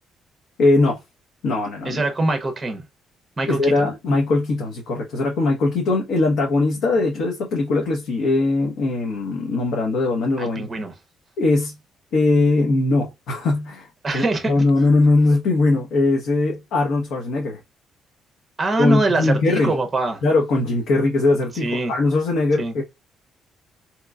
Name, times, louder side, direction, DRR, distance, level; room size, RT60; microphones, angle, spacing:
voice 1, 0.6-1.0 1.4-2.0 3.5-10.7 11.4-11.7 12.1-13.9 14.1-17.6 18.8-19.7 20.2-22.8, left 2 dB, 70° left, 0.9 m, -20 dB
voice 2, 1.8-2.8 3.4-3.9 10.4-10.9 14.0-14.6 18.6-20.2 21.6-21.9 22.6-22.7, right 2 dB, 15° right, 0.6 m, -23 dB
3.7 x 3.0 x 2.3 m
cardioid pair, 165°, 0 cm